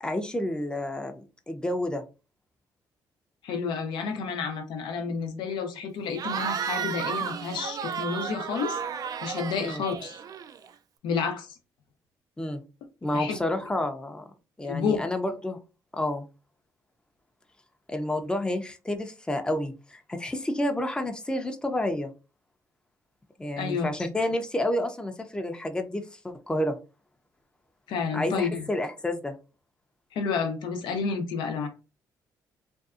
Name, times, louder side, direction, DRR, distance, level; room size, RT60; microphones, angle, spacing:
voice 1, 0.0-2.0 9.6-9.8 12.4-12.6 13.0-14.2 14.6-15.6 15.9-16.2 17.9-22.1 23.4-26.8 28.1-29.4, left 1 dB, 10° left, 0.5 m, -30 dB
voice 2, 3.4-8.8 9.2-10.2 11.0-11.5 13.1-13.4 14.6-15.0 23.6-23.9 27.9-28.6 30.1-31.7, left 5 dB, 75° left, 0.6 m, -30 dB
Cheering / Crowd, 6.1-10.7, right 7 dB, 50° right, 0.3 m, -33 dB
2.6 x 2.3 x 2.4 m
supercardioid pair, 60°, 8 cm